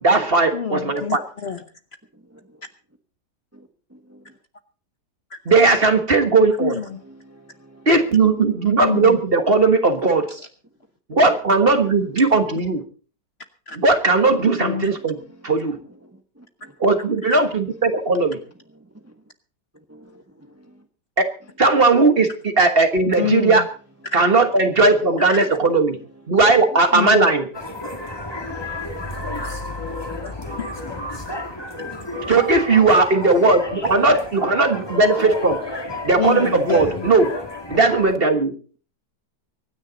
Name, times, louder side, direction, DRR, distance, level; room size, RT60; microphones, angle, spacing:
voice 1, 0.0-1.2 5.5-6.8 7.8-10.3 11.1-12.8 13.7-15.2 15.4-15.8 16.8-18.4 21.2-21.3 21.6-23.6 24.1-26.0 26.3-27.5 32.3-35.6 36.0-37.3 37.7-38.5, right 3 dB, 35° right, 1.5 m, -17 dB
voice 2, 0.5-1.6 5.3-5.4 6.6-7.0 8.8-9.2 10.3-10.5 12.2-12.3 13.7-13.8 14.6-14.9 17.2-17.4 23.2-23.7 25.3-25.5 26.9-27.3 30.2-30.7 31.9-32.4 36.2-37.1, left 7 dB, 45° left, 1.0 m, -27 dB
voice 3, 7.3-7.9 19.9-20.2 28.7-29.4 31.3-31.5 32.2-32.3 36.0-36.1, right 1 dB, 10° right, 1.0 m, -49 dB
sound 1, 27.5-38.1, left 2 dB, 15° left, 1.9 m, -31 dB
24.5 x 9.9 x 4.0 m
omnidirectional pair, 1.8 m